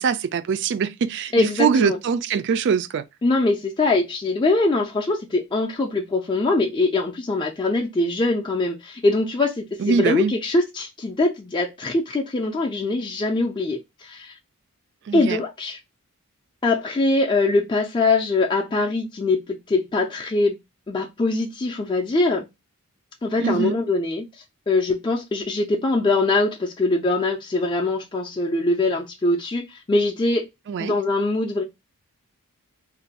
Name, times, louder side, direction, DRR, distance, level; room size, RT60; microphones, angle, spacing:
voice 1, 0.0-3.0 9.8-10.3 15.1-15.4 23.4-23.8 30.7-30.9, right 6 dB, 50° right, 0.3 m, -22 dB
voice 2, 1.3-2.0 3.2-14.4 15.1-15.8 16.6-20.6 20.9-22.5 23.2-24.3 24.7-30.5 30.8-31.6, left 2 dB, 20° left, 0.4 m, -22 dB
2.5 x 2.2 x 4.0 m
head